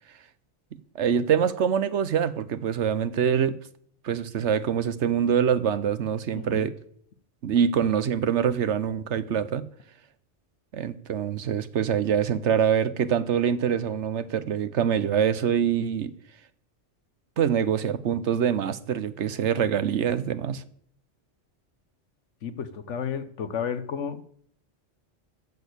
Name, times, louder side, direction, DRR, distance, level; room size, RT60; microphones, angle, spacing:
voice 1, 0.9-3.6 4.0-6.7 7.4-9.7 10.7-16.1 17.4-20.6, right 8 dB, 80° right, 1.2 m, -25 dB
voice 2, 6.3-6.7 22.4-24.3, left 7 dB, 85° left, 1.3 m, -32 dB
13.5 x 6.4 x 8.2 m
omnidirectional pair, 1.2 m